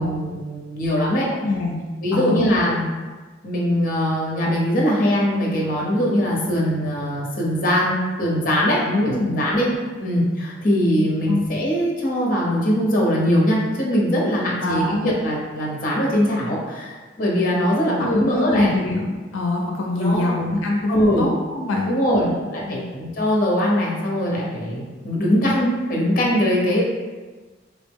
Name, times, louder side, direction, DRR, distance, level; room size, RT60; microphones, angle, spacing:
voice 1, 0.0-1.3 2.0-2.9 3.4-9.7 10.0-18.7 20.0-20.3 20.9-21.3 21.9-26.8, equal, 45° left, -3 dB, 0.7 m, -21 dB
voice 2, 1.3-1.8 2.1-2.6 8.9-9.4 11.3-11.5 14.6-15.2 18.0-22.4 22.7-22.9, left 2 dB, 90° left, 0 dB, 0.4 m, -24 dB
3.7 x 2.0 x 3.4 m, 1.3 s
head